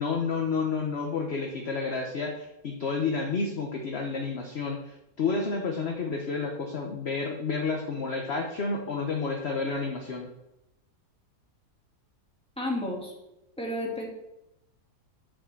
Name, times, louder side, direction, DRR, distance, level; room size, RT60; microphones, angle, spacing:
voice 1, 0.0-10.3, left 4 dB, 45° left, 2 dB, 1.0 m, -30 dB
voice 2, 12.6-13.1 13.6-14.1, left 1 dB, 5° left, -3 dB, 2.3 m, -31 dB
7.5 x 5.4 x 6.9 m, 0.89 s
omnidirectional pair, 1.7 m